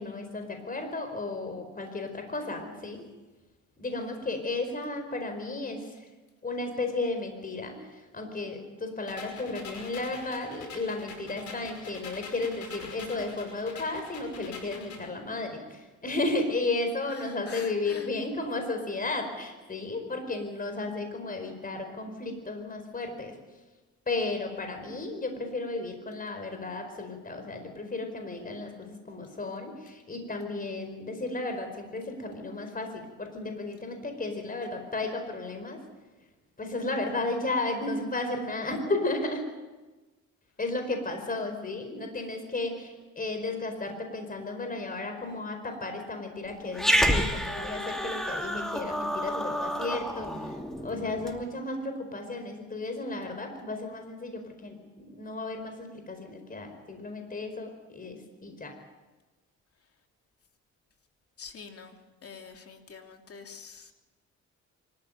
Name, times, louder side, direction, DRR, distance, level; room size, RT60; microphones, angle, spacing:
voice 1, 0.0-3.1 3.8-6.1 6.4-23.4 24.1-35.8 36.6-39.4 40.6-50.6 50.8-58.7, left 2 dB, 30° left, 6 dB, 4.8 m, -34 dB
sound 1, 9.1-15.1, left 4 dB, 65° left, 5.6 m, -45 dB
voice 2, 17.1-18.1 61.4-62.0 62.2-63.9, left 5 dB, 50° left, 4 dB, 2.9 m, -46 dB
Growling, 46.7-51.4, equal, ahead, 2.6 m, -29 dB
25.0 x 14.5 x 9.1 m, 1.2 s
cardioid pair, 90°, 30 cm